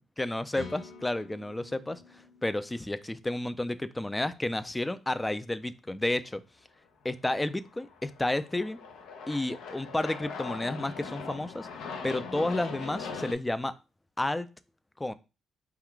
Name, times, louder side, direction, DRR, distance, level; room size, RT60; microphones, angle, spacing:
voice 1, 0.2-6.4 7.0-8.8 9.3-11.7 12.0-13.8 14.2-14.5 15.0-15.1, left 1 dB, 10° left, 0.3 m, -31 dB
sound 1, 0.5-4.3, left 3 dB, 50° left, 1.2 m, -49 dB
Aircraft, 7.6-13.3, left 5 dB, 85° left, 0.7 m, -40 dB
3.6 x 2.3 x 4.5 m
cardioid pair, 90°, 0 cm